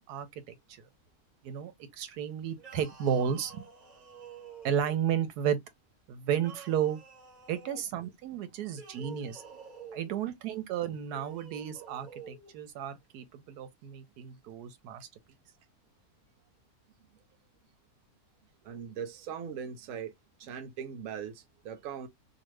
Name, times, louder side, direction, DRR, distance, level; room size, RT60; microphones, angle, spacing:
voice 1, 0.1-0.5 1.4-3.6 4.6-5.6 6.1-7.0 7.5-9.4 9.9-15.1, right 9 dB, 85° right, 1.1 m, -33 dB
sound 1, 2.6-5.3 6.4-7.9 8.7-10.2 11.1-12.5, right 5 dB, 30° right, 1.2 m, -49 dB
voice 2, 18.6-20.1 20.4-22.1, right 7 dB, 65° right, 1.0 m, -40 dB
2.7 x 2.4 x 3.0 m
omnidirectional pair, 1.7 m